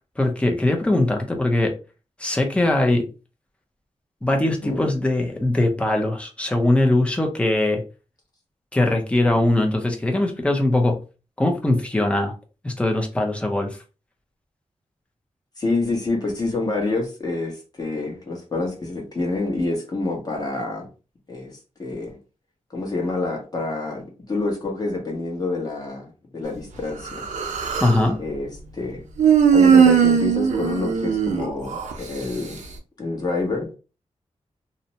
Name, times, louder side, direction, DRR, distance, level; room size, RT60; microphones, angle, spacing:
voice 1, 0.2-1.7 2.2-3.1 4.2-7.8 8.7-11.0 11.4-12.3 12.6-13.8 27.8-28.2, left 1 dB, 10° left, 0.6 m, -21 dB
voice 2, 15.6-20.9 21.3-21.5 21.8-22.2 22.7-27.2 28.2-29.0 29.5-32.6 33.0-33.8, left 3 dB, 35° left, 1.1 m, -27 dB
Human voice, 27.1-28.0 29.2-31.9, right 7 dB, 85° right, 0.5 m, -18 dB
2.7 x 2.1 x 2.7 m
wide cardioid pair, 105°, 12 cm